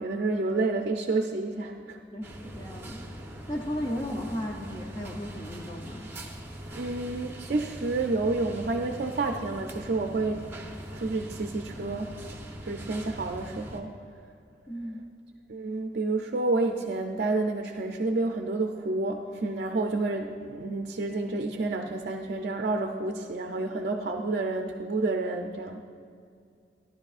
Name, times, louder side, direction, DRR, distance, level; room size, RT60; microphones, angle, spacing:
voice 1, 0.0-2.0 6.7-10.5 10.9-12.1 12.6-14.0 15.5-25.8, right 3 dB, 55° right, 4 dB, 0.5 m, -29 dB
voice 2, 2.1-3.0 3.5-6.1 14.7-15.1, equal, 25° left, 0 dB, 0.6 m, -35 dB
sound 1, 2.2-13.8, right 1 dB, 10° right, 0.8 m, -42 dB
13.0 x 11.5 x 2.4 m, 2.4 s
head